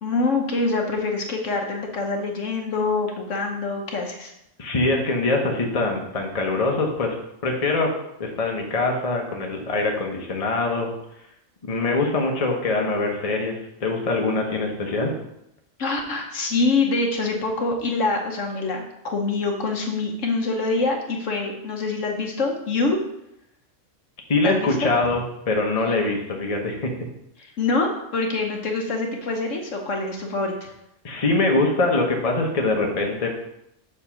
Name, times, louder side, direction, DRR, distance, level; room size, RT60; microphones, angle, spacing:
voice 1, 0.0-4.3 15.8-23.0 24.4-24.9 27.6-30.7, left 3 dB, 65° left, 2 dB, 1.2 m, -25 dB
voice 2, 4.6-7.1 7.4-7.9 8.2-10.9 11.6-15.1 24.3-27.1 31.0-33.4, left 2 dB, 30° left, 1 dB, 1.0 m, -23 dB
7.1 x 3.6 x 5.7 m, 0.81 s
omnidirectional pair, 1.4 m